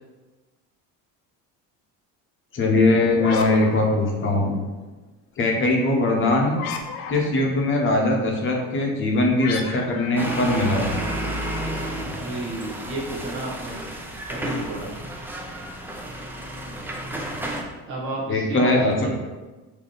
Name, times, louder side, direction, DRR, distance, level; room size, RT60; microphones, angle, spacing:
voice 1, 2.5-4.6 5.4-6.6 7.1-11.1 18.3-19.1, left 2 dB, 35° left, 0 dB, 0.8 m, -21 dB
sound 1, 3.1-4.7 6.5-7.6 9.4-11.3, left 6 dB, 80° left, 0.6 m, -34 dB
sound 2, 10.2-17.6, right 1 dB, 5° right, 0.4 m, -31 dB
voice 2, 12.1-13.8 14.3-14.9 17.9-19.1, right 2 dB, 35° right, -5 dB, 1.0 m, -32 dB
3.5 x 2.8 x 3.9 m, 1.2 s
cardioid pair, 115°, 37 cm